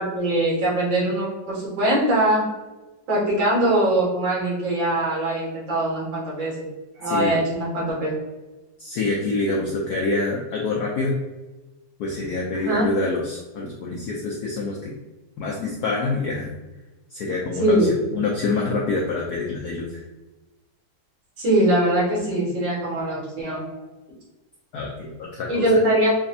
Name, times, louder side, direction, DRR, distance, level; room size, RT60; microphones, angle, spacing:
voice 1, 0.0-2.5 3.1-6.7 7.0-8.1 12.5-12.9 17.6-17.9 21.4-23.7 25.5-26.1, right 1 dB, 60° right, -6 dB, 2.2 m, -22 dB
voice 2, 7.0-7.4 8.8-11.1 12.0-14.9 15.4-16.5 17.1-20.0 24.7-25.8, left 3 dB, 90° left, -2 dB, 0.8 m, -26 dB
5.0 x 2.4 x 2.7 m, 1.1 s
omnidirectional pair, 2.3 m